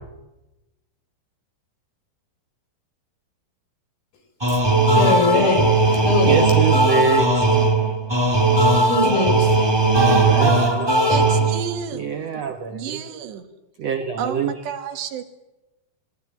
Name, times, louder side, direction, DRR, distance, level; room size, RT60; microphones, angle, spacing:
sound 1, 4.4-11.8, right 2 dB, 10° right, 1.2 m, -18 dB
voice 1, 4.9-6.4 8.7-9.6, left 3 dB, 60° left, 5.9 m, -22 dB
voice 2, 6.3-7.5 10.2-11.0 11.9-13.0 13.8-14.8, right 6 dB, 70° right, 1.5 m, -25 dB
voice 3, 11.1-12.1 12.7-13.5 14.2-15.2, right 8 dB, 90° right, 4.0 m, -31 dB
20.0 x 19.5 x 9.4 m
omnidirectional pair, 4.8 m